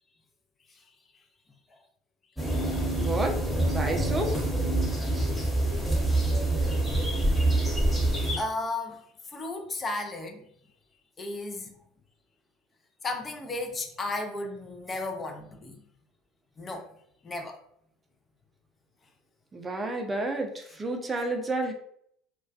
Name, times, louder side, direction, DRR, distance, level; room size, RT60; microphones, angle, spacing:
sound 1, 2.4-8.4, right 1 dB, 5° left, 1.0 m, -26 dB
voice 1, 3.0-3.4 3.7-4.4 19.5-21.7, right 2 dB, 25° right, 4 dB, 0.5 m, -30 dB
voice 2, 5.4-6.1 7.9-8.0 8.4-10.4 11.2-11.7 13.0-15.8 16.6-16.9 17.2-17.6 21.2-21.3, left 2 dB, 30° left, 3 dB, 0.4 m, -35 dB
2.3 x 2.2 x 2.4 m, 0.68 s
hypercardioid pair, 65°, 0 cm